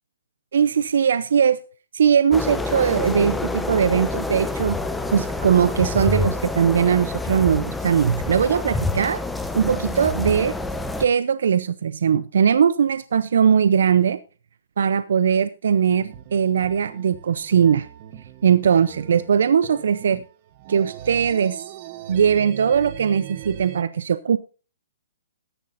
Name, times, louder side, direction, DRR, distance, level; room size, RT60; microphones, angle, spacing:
voice 1, 0.5-1.6 1.9-4.8 5.1-9.2 9.5-10.5 11.0-14.2 14.8-17.9 18.4-20.2 20.7-21.6 22.1-24.4, right 7 dB, 70° right, 14 dB, 0.6 m, -20 dB
sound 1, 2.3-11.1, left 2 dB, 5° left, 0.7 m, -27 dB
sound 2, 15.9-23.8, right 11 dB, 35° right, 1.1 m, -40 dB
14.5 x 11.0 x 2.6 m, 0.36 s
hypercardioid pair, 155°, 0 cm